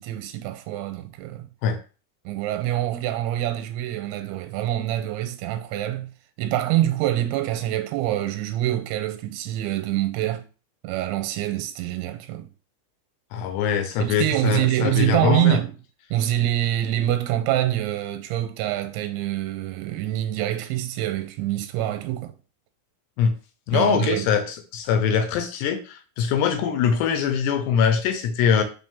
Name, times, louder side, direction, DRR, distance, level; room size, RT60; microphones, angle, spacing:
voice 1, 0.0-1.5 2.3-6.1 6.4-10.5 10.8-12.5 14.0-15.8 16.1-22.3 23.7-24.3, right 13 dB, 85° right, 3.0 m, -25 dB
voice 2, 13.3-15.6 23.2-23.3 23.7-28.6, left 7 dB, 75° left, 2.7 m, -22 dB
6.1 x 6.0 x 3.6 m
omnidirectional pair, 5.4 m